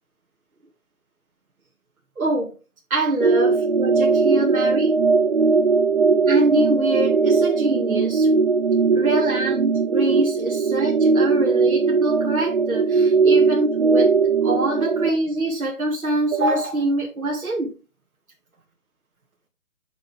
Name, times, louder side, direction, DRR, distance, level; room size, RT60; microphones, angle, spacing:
voice 1, 2.2-2.5 2.9-5.0 6.3-8.3 8.9-14.1 14.4-17.7, right 2 dB, 75° right, -1 dB, 2.4 m, -24 dB
sound 1, 3.2-15.1, right 4 dB, 45° right, 0.7 m, -19 dB
7.5 x 7.0 x 3.5 m, 0.31 s
figure-of-eight pair, 150°, 42 cm